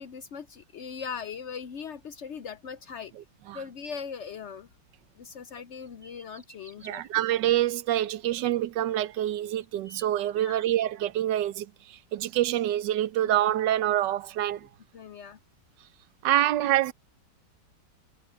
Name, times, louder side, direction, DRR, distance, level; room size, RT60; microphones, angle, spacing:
voice 1, 0.0-3.1 3.5-4.7 5.2-7.2 10.4-10.6 14.9-15.4, left 6 dB, 65° left, 0.7 m, -40 dB
sound 1, 5.8-7.1 8.8-8.9 9.4-10.8, right 2 dB, 25° right, 4.0 m, -53 dB
voice 2, 6.8-14.7 16.2-16.9, right 12 dB, 75° right, 1.3 m, -26 dB
omnidirectional pair, 1.9 m